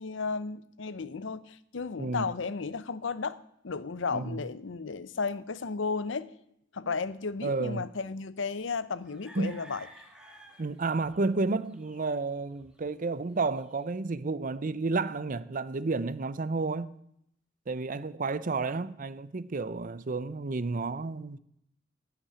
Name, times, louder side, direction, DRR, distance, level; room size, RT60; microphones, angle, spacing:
voice 1, 0.0-3.4 3.6-6.3 6.7-9.9, left 4 dB, 70° left, 0.7 m, -34 dB
voice 2, 7.4-7.9 9.4-9.6 10.6-16.9 17.7-21.4, right 3 dB, 45° right, 0.6 m, -31 dB
sound 1, 9.0-13.9, right 2 dB, 5° right, 1.7 m, -54 dB
14.5 x 6.0 x 9.5 m
head